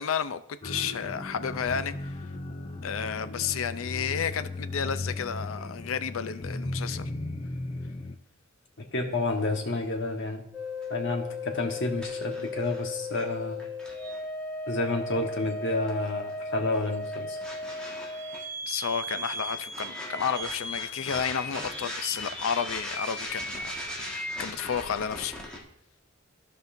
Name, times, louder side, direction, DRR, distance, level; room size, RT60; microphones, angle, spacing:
voice 1, 0.0-2.2 2.8-7.1 18.7-25.3, left 7 dB, 90° left, 12 dB, 0.5 m, -32 dB
sound 1, 0.6-8.2, left 2 dB, 25° left, 0.5 m, -36 dB
voice 2, 8.9-10.4 10.9-13.7 14.7-17.4, left 2 dB, 65° left, 3 dB, 1.3 m, -30 dB
sound 2, 10.5-25.6, left 1 dB, 5° left, 1.6 m, -36 dB
15.0 x 5.4 x 2.6 m, 0.75 s
head